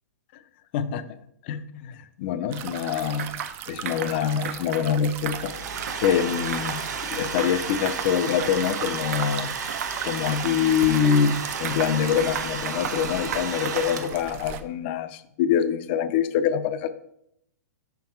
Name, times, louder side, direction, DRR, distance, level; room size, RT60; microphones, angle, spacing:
voice 1, 0.7-1.1 1.5-1.6 2.2-3.3 3.7-5.5 6.0-9.5 10.1-16.9, left 8 dB, 35° left, 12 dB, 0.5 m, -25 dB
sound 1, 2.5-14.6, right 9 dB, 25° right, 0.4 m, -38 dB
sound 2, 3.2-3.6 3.9-4.2 4.4-4.9 5.2-6.2 6.5-6.8 7.1-8.1 8.4-8.8 9.1-9.4 9.7-10.0 10.3-11.2 11.7-13.0 13.3-14.0, right 8 dB, 55° right, 0.7 m, -35 dB
Domestic sounds home sounds, 5.2-14.4, right 5 dB, 80° right, 1.1 m, -33 dB
5.8 x 5.2 x 4.4 m, 0.75 s
hypercardioid pair, 150°, 9 cm